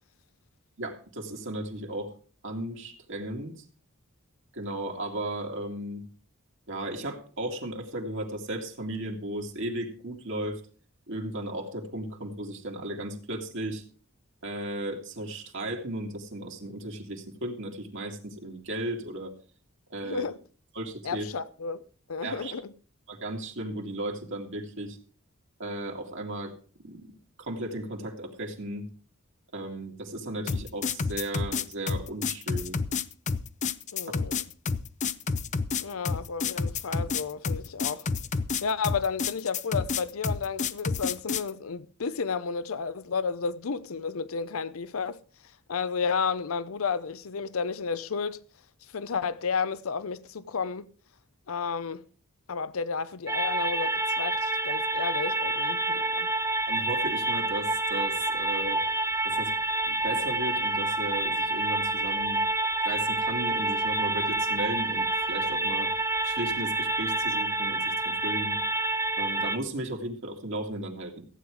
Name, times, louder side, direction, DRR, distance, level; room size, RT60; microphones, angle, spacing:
voice 1, 0.8-2.1 2.4-3.6 4.5-6.0 6.7-10.6 11.1-13.8 14.4-19.3 19.9-20.3 20.7-21.3 22.2-22.5 23.1-25.0 25.6-26.5 26.8-27.1 27.4-28.9 29.5-32.8 56.7-58.8 59.2-59.5 59.8-62.4 62.8-65.9 66.2-68.6 69.2-71.3, right 1 dB, 60° right, 2.3 m, -35 dB
voice 2, 20.0-20.4 21.0-21.8 22.1-22.7 33.9-34.4 35.8-38.1 38.6-45.2 45.7-48.4 48.9-50.9 51.5-52.1 52.5-56.3, left 5 dB, 75° left, 0.6 m, -32 dB
sound 1, 30.5-41.5, left 5 dB, 35° left, 0.5 m, -29 dB
sound 2, 53.3-69.6, right 2 dB, 15° right, 0.6 m, -28 dB
15.0 x 9.1 x 4.8 m
head